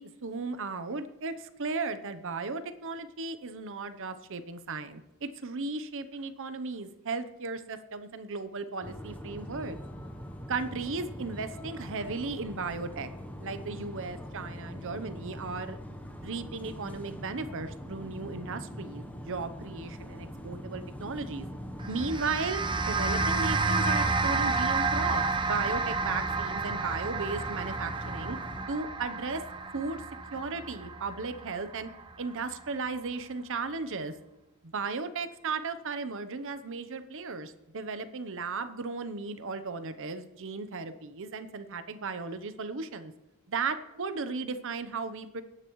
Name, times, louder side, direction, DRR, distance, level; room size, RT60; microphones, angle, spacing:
voice 1, 0.0-9.8 10.5-13.1 13.4-15.8 16.2-21.5 21.9-28.4 28.7-29.4 29.7-30.0 30.3-31.9 32.2-34.1 34.6-43.1 43.5-45.4, right 4 dB, 60° right, 10 dB, 0.9 m, -35 dB
sound 1, 8.8-28.7, equal, 5° left, 1.0 m, -42 dB
sound 2, 21.8-32.3, right 3 dB, 20° right, 0.7 m, -30 dB
23.0 x 9.9 x 3.1 m, 0.99 s
head